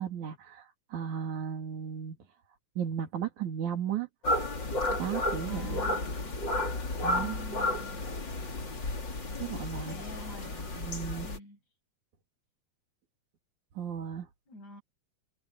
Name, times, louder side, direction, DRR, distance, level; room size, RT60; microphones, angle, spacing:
voice 1, 0.0-2.2 2.8-4.1 4.9-5.9 7.0-7.4 9.4-10.0 10.4-11.3 13.8-14.3, right 8 dB, 80° right, 3.9 m, -35 dB
sound 1, 4.2-11.4, left 1 dB, 40° left, 3.9 m, -32 dB
voice 2, 5.5-6.4 7.2-8.1 9.8-10.7 11.2-11.6 14.5-14.8, left 1 dB, 70° left, 9.2 m, -47 dB
omnidirectional pair, 3.3 m